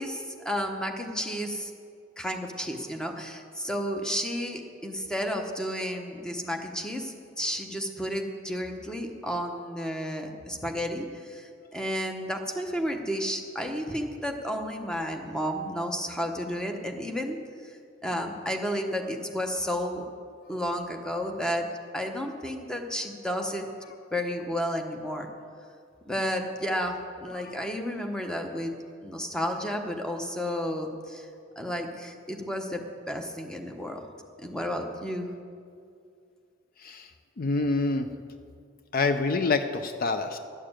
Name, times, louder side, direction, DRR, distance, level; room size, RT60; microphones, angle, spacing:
voice 1, 0.0-1.7 2.2-17.4 18.0-20.0 20.5-23.7 24.1-25.3 26.1-28.7 29.0-31.3 31.6-34.1 34.4-35.3, equal, 5° left, 3 dB, 0.9 m, -32 dB
voice 2, 37.4-38.1 38.9-40.4, left 3 dB, 50° left, 9 dB, 0.5 m, -26 dB
12.0 x 6.8 x 8.9 m, 2.3 s
head